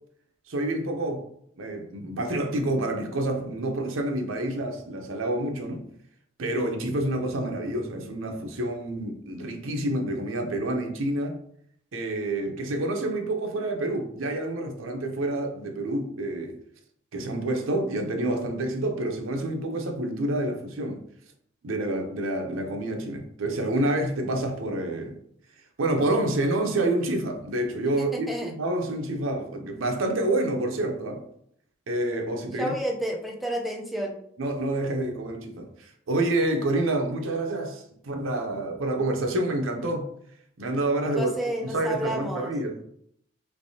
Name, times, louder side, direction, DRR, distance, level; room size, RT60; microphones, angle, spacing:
voice 1, 0.5-1.3 1.6-5.8 6.4-11.4 11.9-16.6 17.1-21.0 21.6-25.2 25.8-28.3 28.6-31.2 31.9-32.7 34.4-40.1 40.6-41.3 41.6-42.8, right 1 dB, 85° right, 3 dB, 0.6 m, -28 dB
voice 2, 28.0-28.5 32.6-34.2 41.1-42.5, equal, ahead, 0 dB, 0.4 m, -31 dB
3.3 x 3.1 x 2.7 m, 0.69 s
head